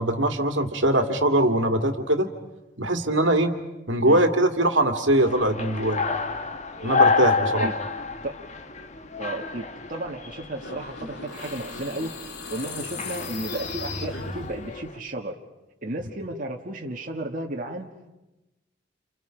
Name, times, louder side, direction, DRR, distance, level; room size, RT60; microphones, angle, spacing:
voice 1, 0.0-2.3 2.8-3.5 3.9-6.0 6.8-7.7, right 1 dB, 80° right, 6 dB, 2.3 m, -22 dB
sound 1, 5.1-15.0, left 4 dB, 40° left, 1.1 m, -29 dB
voice 2, 7.4-7.7 8.2-8.3 9.2-12.1 12.5-15.3 15.8-17.9, right 1 dB, 45° right, 0 dB, 1.8 m, -33 dB
sound 2, 10.5-14.8, left 3 dB, 65° left, 2.5 m, -36 dB
30.0 x 30.0 x 5.2 m, 0.99 s
head